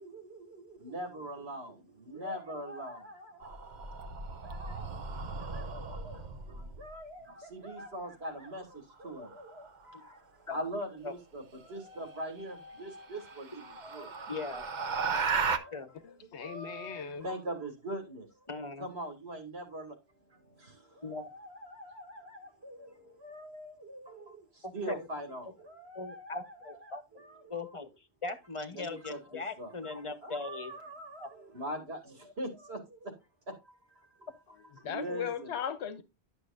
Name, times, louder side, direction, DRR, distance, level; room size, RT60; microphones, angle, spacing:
voice 1, 0.0-3.6 4.4-4.9 5.4-10.2 10.5-14.3 14.9-15.7 16.4-18.3 18.8-20.0 20.6-24.4 24.7-26.4 27.4-27.6 28.7-33.1 33.5-33.6 34.8-35.5, right 1 dB, 75° right, 2.3 m, -42 dB
sound 1, 3.4-6.9 9.2-9.7 11.8-11.9 12.4-12.5 13.0-15.6, right 5 dB, 50° right, 0.8 m, -35 dB
voice 2, 14.3-14.7 15.7-15.9 18.5-18.9 21.0-21.3 24.6-25.1 25.9-27.0 27.5-27.9 28.2-30.7 31.2-31.3, left 3 dB, 30° left, 1.0 m, -39 dB
voice 3, 16.0-17.3 34.8-36.0, left 8 dB, 85° left, 1.1 m, -37 dB
11.5 x 6.3 x 2.5 m
omnidirectional pair, 1.1 m